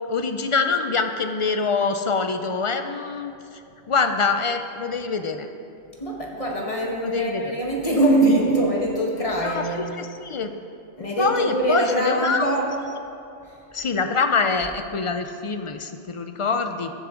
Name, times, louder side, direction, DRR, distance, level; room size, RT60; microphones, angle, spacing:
voice 1, 0.1-3.3 3.9-5.5 7.0-7.5 9.4-9.6 9.9-10.5 11.2-12.5 13.7-16.9, left 4 dB, 45° left, 7 dB, 0.4 m, -24 dB
voice 2, 6.0-9.9 11.0-12.7, right 1 dB, 30° left, -2 dB, 1.5 m, -23 dB
14.0 x 7.9 x 3.8 m, 2.6 s
omnidirectional pair, 1.1 m